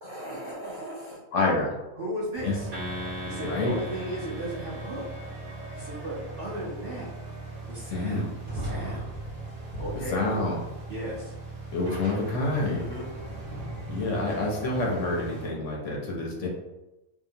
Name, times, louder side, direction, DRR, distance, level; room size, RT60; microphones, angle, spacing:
voice 1, 0.0-1.2 2.0-2.7 3.2-5.0 5.7-7.1 7.7-9.1 9.8-10.2 10.9-11.3 12.7-13.1, right 1 dB, 55° right, -7 dB, 0.6 m, -36 dB
voice 2, 1.3-1.7 2.4-2.5 3.4-3.7 7.9-8.3 10.1-10.6 11.7-12.8 13.9-16.5, left 2 dB, 65° left, -2 dB, 0.8 m, -27 dB
sound 1, 2.3-15.5, right 2 dB, 30° right, 1.1 m, -38 dB
sound 2, 2.7-6.2, equal, 80° right, 1.1 m, -40 dB
2.8 x 2.2 x 2.6 m, 1.0 s
omnidirectional pair, 1.5 m